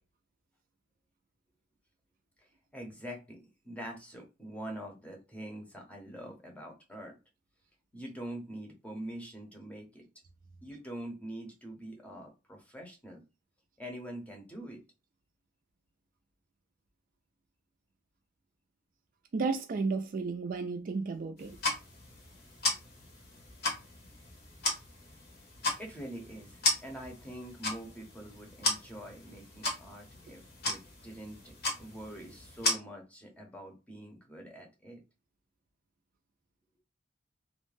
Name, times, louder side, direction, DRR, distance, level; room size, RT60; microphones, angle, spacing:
voice 1, 2.4-7.2 7.9-10.1 10.6-13.2 13.8-14.8 25.8-35.0, right 1 dB, 5° left, 0.7 m, -45 dB
voice 2, 19.3-21.6, right 4 dB, 45° right, 0.3 m, -33 dB
sound 1, 21.4-32.7, left 2 dB, 55° left, 0.9 m, -36 dB
2.4 x 2.1 x 3.1 m
head